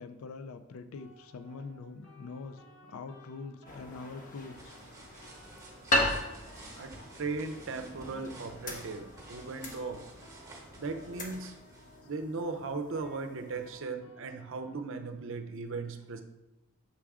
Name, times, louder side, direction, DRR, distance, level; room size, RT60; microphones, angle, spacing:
voice 1, 0.0-2.6 2.9-4.8, left 4 dB, 70° left, 10 dB, 0.4 m, -44 dB
sound 1, 0.9-14.8, equal, 55° left, 1.0 m, -58 dB
sound 2, 3.7-13.8, left 1 dB, 35° left, 0.7 m, -38 dB
sound 3, 4.2-12.0, right 2 dB, 15° right, 1.0 m, -52 dB
voice 2, 6.8-10.1 10.8-11.6 12.0-16.2, right 3 dB, 60° right, 7 dB, 0.5 m, -37 dB
5.9 x 3.6 x 4.8 m, 0.98 s
head